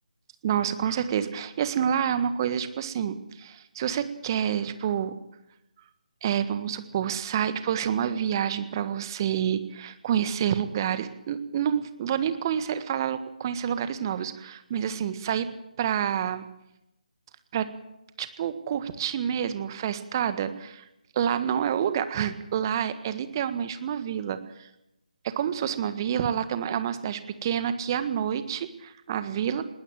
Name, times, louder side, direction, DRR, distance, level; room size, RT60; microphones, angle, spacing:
voice 1, 0.4-5.2 6.2-15.5 15.8-16.5 17.5-17.7 18.2-20.8 21.1-24.7 25.2-29.6, right 9 dB, 30° right, 11 dB, 1.6 m, -28 dB
20.0 x 19.5 x 7.7 m, 0.88 s
figure-of-eight pair, 155°, 4 cm